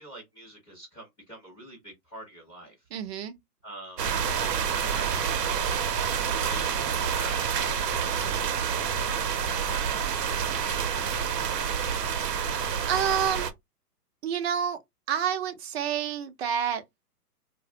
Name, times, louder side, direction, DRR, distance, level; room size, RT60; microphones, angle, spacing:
voice 1, 0.0-2.9 3.6-4.1 4.4-8.4, right 1 dB, 10° left, 0.6 m, -46 dB
voice 2, 2.9-3.3 12.5-13.5 14.2-14.8 15.1-16.8, right 8 dB, 45° right, 0.5 m, -29 dB
sound 1, 4.0-13.5, right 7 dB, 85° right, 0.7 m, -28 dB
2.3 x 2.0 x 2.7 m
hypercardioid pair, 140°, 47 cm